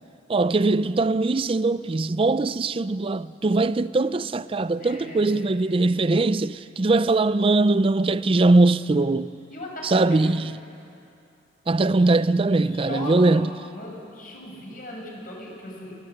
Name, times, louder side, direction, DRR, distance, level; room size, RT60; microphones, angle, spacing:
voice 1, 0.3-9.3 9.8-10.5 11.7-13.5, right 2 dB, 30° right, 0.5 m, -21 dB
voice 2, 4.8-5.4 9.5-10.4 11.9-12.2 12.6-13.3 13.7-16.0, left 1 dB, 55° left, 5.9 m, -38 dB
28.5 x 13.5 x 8.0 m
head